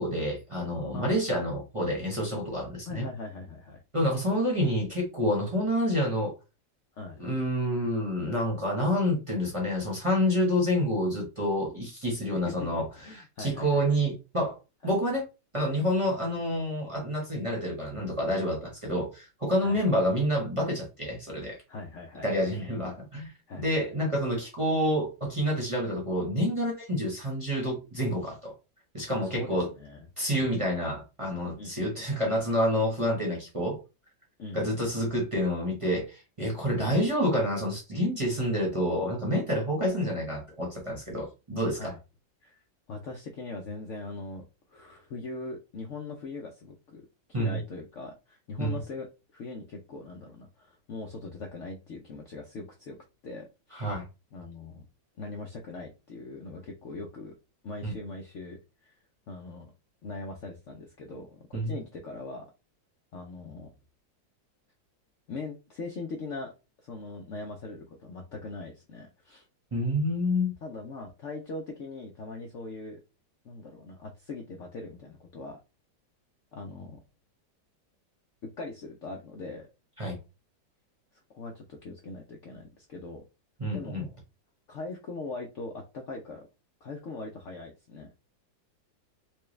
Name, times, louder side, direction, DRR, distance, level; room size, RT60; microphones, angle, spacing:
voice 1, 0.0-3.1 3.9-6.3 7.2-14.6 14.8-15.3 15.5-21.6 22.2-28.5 28.9-29.7 30.2-33.8 34.5-41.9 47.3-47.6 48.6-48.8 53.7-54.1 57.8-57.9 61.5-61.7 69.7-70.5 80.0-80.2 83.6-84.0, equal, 25° right, 0.8 m, -28 dB
voice 2, 2.9-3.8 6.9-7.2 12.4-14.0 14.8-14.9 19.6-19.8 21.7-22.6 23.5-23.6 29.2-30.1 30.3-30.5 31.6-32.2 34.4-34.7 36.8-36.9 41.7-42.0 42.4-42.6 42.9-47.0 47.4-49.1 49.3-53.0 53.2-53.9 54.3-54.8 55.2-57.3 57.6-59.0 59.3-59.7 60.0-62.5 63.1-63.7 65.3-66.5 66.8-69.5 70.6-73.0 73.4-75.6 76.5-77.0 78.6-79.7 81.3-83.2 83.7-84.1 84.7-86.5 86.8-88.1, left 3 dB, 85° left, 0.6 m, -41 dB
4.5 x 2.3 x 3.1 m
omnidirectional pair, 2.1 m